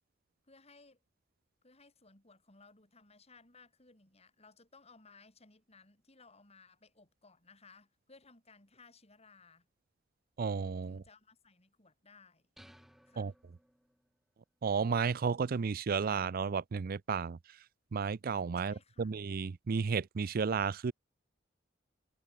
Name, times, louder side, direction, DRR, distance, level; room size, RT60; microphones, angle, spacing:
voice 1, 0.4-1.0 1.6-9.7 10.9-12.5 13.1-13.3 18.6-19.1, left 4 dB, 35° left, 6.1 m, -61 dB
voice 2, 10.4-11.0 13.2-13.3 14.6-17.6 17.9-20.9, right 5 dB, 50° right, 0.4 m, -33 dB
sound 1, 12.6-14.2, equal, ahead, 2.8 m, -61 dB
head